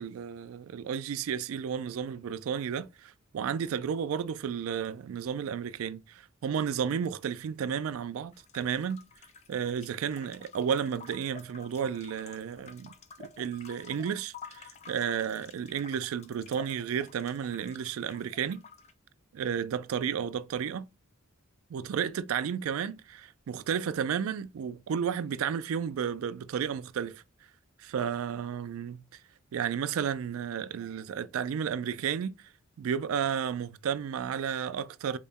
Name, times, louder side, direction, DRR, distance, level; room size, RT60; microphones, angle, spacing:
voice 1, 0.0-9.0 9.5-12.9 13.2-18.6 19.3-20.9 21.7-27.2 27.8-29.0 29.5-32.4 32.8-35.2, right 7 dB, 80° right, 0.3 m, -32 dB
sound 1, 8.3-18.9, left 5 dB, 30° left, 0.4 m, -51 dB
4.0 x 2.1 x 3.5 m
head